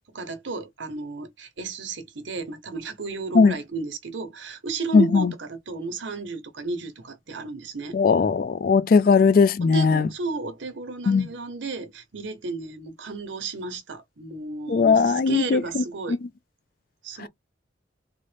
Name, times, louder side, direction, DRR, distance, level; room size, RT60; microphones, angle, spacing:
voice 1, 0.1-8.0 9.7-16.2 17.0-17.3, right 4 dB, 85° right, 0.9 m, -33 dB
voice 2, 4.9-5.3 7.9-10.1 11.1-11.3 14.7-16.2, left 5 dB, 50° left, 0.3 m, -19 dB
3.7 x 2.1 x 3.3 m
head